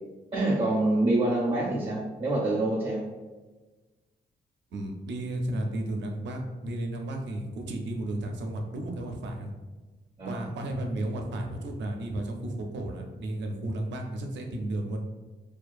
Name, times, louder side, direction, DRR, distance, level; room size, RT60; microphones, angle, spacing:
voice 1, 0.3-3.0 10.2-10.4, right 2 dB, 30° right, -4 dB, 0.4 m, -26 dB
voice 2, 4.7-9.5 10.3-15.0, right 1 dB, 90° right, 3 dB, 0.4 m, -33 dB
2.5 x 2.3 x 2.3 m, 1.3 s
cardioid pair, 120°, 18 cm